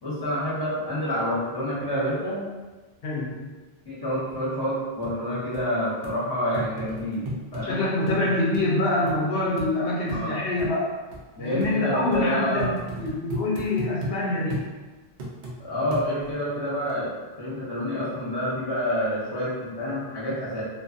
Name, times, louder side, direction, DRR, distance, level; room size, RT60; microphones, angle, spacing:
voice 1, 0.0-2.5 3.9-7.8 10.1-10.3 11.3-12.7 15.6-17.1 17.4-20.6, equal, 25° left, -8 dB, 0.9 m, -28 dB
voice 2, 3.0-3.5 7.6-10.9 11.4-14.6, left 2 dB, 65° left, -4 dB, 0.8 m, -25 dB
sound 1, 5.0-5.1 5.5-5.6 6.0-6.2 6.5-7.7 8.1-8.2 8.5-8.6 9.1-9.2 9.6-9.7 10.1-10.2 10.6-10.7 11.1-11.2 11.6-11.7 12.1-12.2 12.6-14.2 14.5-14.7 15.2-15.6 15.9-16.4 16.9-17.0, right 1 dB, 55° right, 0.6 m, -34 dB
2.5 x 2.4 x 2.5 m, 1.3 s
omnidirectional pair, 1.1 m